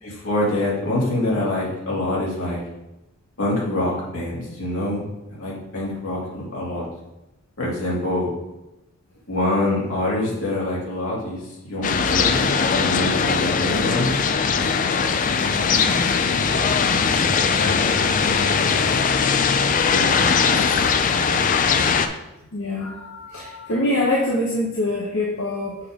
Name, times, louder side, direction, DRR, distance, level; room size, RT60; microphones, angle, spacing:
voice 1, 0.0-2.6 3.4-6.9 7.6-8.3 9.3-14.2 19.9-20.4, left 1 dB, 85° left, -5 dB, 2.5 m, -25 dB
sound 1, 11.8-22.1, left 5 dB, 40° left, 0.4 m, -20 dB
voice 2, 22.5-25.8, left 1 dB, 70° left, -2 dB, 0.9 m, -24 dB
6.6 x 5.2 x 3.6 m, 0.96 s
head